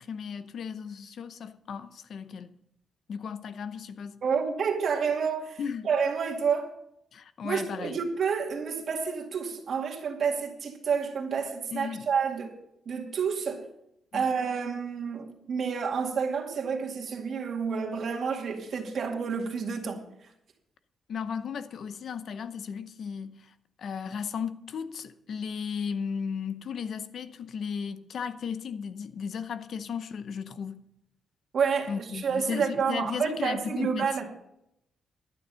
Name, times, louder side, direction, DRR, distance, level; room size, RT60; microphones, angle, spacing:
voice 1, 0.0-2.5 3.1-4.2 5.6-5.9 7.1-8.0 11.7-12.1 14.1-14.3 21.1-30.9 31.9-34.2, left 6 dB, 65° left, 0.7 m, -35 dB
voice 2, 4.2-5.6 5.8-6.7 7.4-12.5 12.9-13.7 14.1-20.0 31.5-34.3, right 6 dB, 60° right, 2.2 m, -29 dB
11.5 x 9.6 x 5.6 m
cardioid pair, 120°, 0 cm